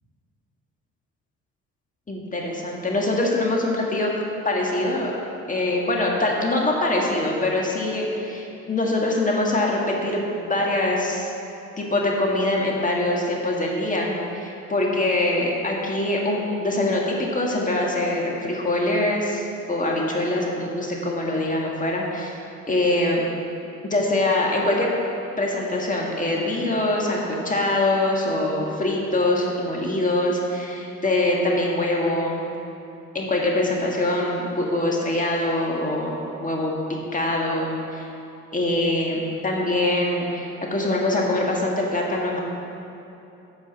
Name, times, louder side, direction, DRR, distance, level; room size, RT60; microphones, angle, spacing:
voice 1, 2.1-4.1 4.4-5.1 5.5-11.3 11.8-22.4 22.7-23.2 23.8-24.9 25.4-32.4 33.1-36.1 36.4-38.1 38.5-42.4, left 1 dB, 25° left, -2 dB, 1.8 m, -23 dB
8.7 x 5.2 x 7.6 m, 3.0 s
cardioid pair, 90°, 30 cm